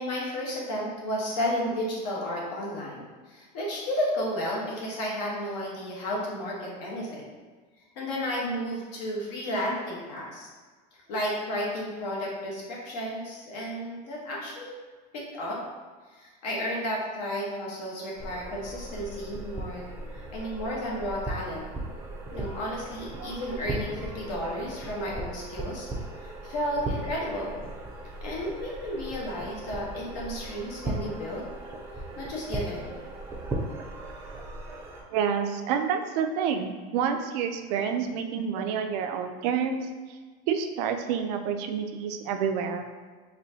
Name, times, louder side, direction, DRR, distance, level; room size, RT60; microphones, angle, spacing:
voice 1, 0.0-7.2 8.0-10.5 10.9-14.8 15.1-15.6 16.2-21.7 22.3-25.9 26.2-27.6 28.2-31.4 32.2-33.0, equal, 75° left, -4 dB, 1.2 m, -32 dB
sound 1, 18.2-35.0, right 2 dB, 10° right, 0.4 m, -37 dB
voice 2, 35.1-40.2 40.5-42.9, right 7 dB, 75° right, 5 dB, 0.4 m, -28 dB
4.2 x 2.6 x 2.7 m, 1.4 s
supercardioid pair, 140°, 21 cm